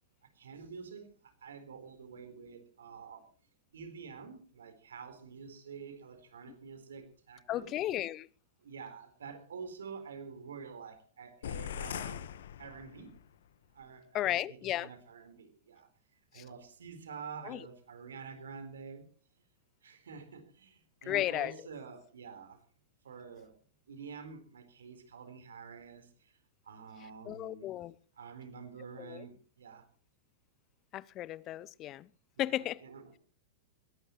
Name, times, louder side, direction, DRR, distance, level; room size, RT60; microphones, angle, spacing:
voice 1, 0.4-3.3 3.7-7.7 8.6-12.2 12.6-13.1 13.7-15.9 16.3-19.1 19.8-22.6 23.0-23.5 23.9-26.3 26.6-27.7 28.2-29.9 32.4-32.5 32.8-33.2, right 5 dB, 75° right, 4.2 m, -48 dB
voice 2, 7.5-8.3 14.1-14.9 16.3-16.4 17.4-17.7 21.0-21.7 27.0-27.9 29.0-29.3 30.9-32.1 32.4-32.8, left 14 dB, 35° left, 0.6 m, -35 dB
sound 1, 11.4-13.3, left 9 dB, 65° left, 1.3 m, -41 dB
21.5 x 18.5 x 3.2 m
figure-of-eight pair, 100°, 0 cm